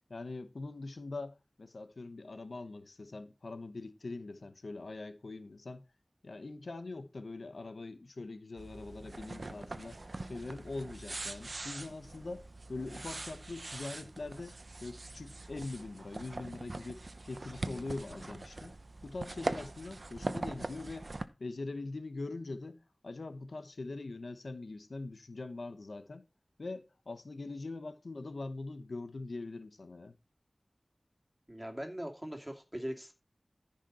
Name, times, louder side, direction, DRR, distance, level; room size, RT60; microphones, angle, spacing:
voice 1, 0.1-5.8 6.2-17.0 17.3-21.1 21.4-26.2 26.6-30.1, left 3 dB, 85° left, 1.0 m, -43 dB
sound 1, 8.6-21.3, right 2 dB, 60° right, 0.8 m, -42 dB
voice 2, 31.5-33.1, equal, 15° right, 2.7 m, -40 dB
14.0 x 5.9 x 4.2 m
wide cardioid pair, 55°, 0 cm